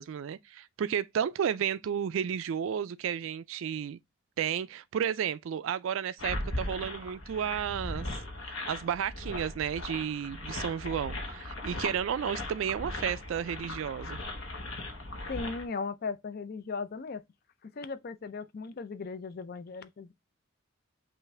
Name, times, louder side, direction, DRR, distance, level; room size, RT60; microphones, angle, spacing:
voice 1, 0.0-4.0 4.4-8.1 8.7-14.2, right 8 dB, 65° right, 0.3 m, -32 dB
sound 1, 6.2-15.6, left 2 dB, 65° left, 1.1 m, -38 dB
voice 2, 15.3-17.2 17.7-20.1, left 4 dB, 45° left, 0.4 m, -37 dB
5.6 x 2.5 x 3.2 m
head